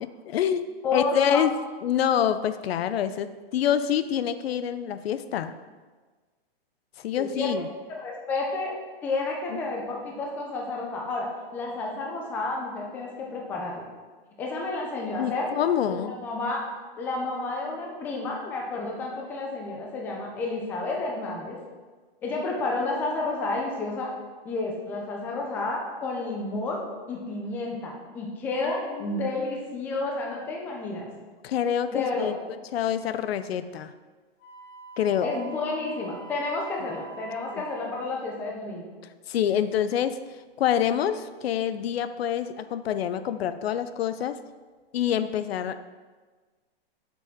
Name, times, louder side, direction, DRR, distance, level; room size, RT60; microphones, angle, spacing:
voice 1, 0.0-1.5 1.8-5.6 7.0-7.7 9.5-9.6 15.2-16.2 28.9-29.3 31.4-32.3 32.7-33.9 35.0-35.3 37.5-37.6 39.3-40.2 40.6-44.4 44.9-45.8, left 9 dB, 75° left, 12 dB, 0.6 m, -26 dB
voice 2, 0.8-1.4 7.1-7.5 7.9-8.7 9.0-11.3 11.5-13.8 14.4-15.5 16.0-16.6 17.0-21.6 22.2-24.1 24.4-26.8 27.1-31.1 31.9-32.4 35.2-38.9, left 3 dB, 5° left, -1 dB, 0.4 m, -31 dB
Wind instrument woodwind instrument, 34.4-38.0, right 3 dB, 30° left, 1.1 m, -45 dB
8.4 x 6.0 x 3.6 m, 1.4 s
hypercardioid pair, 160°, 31 cm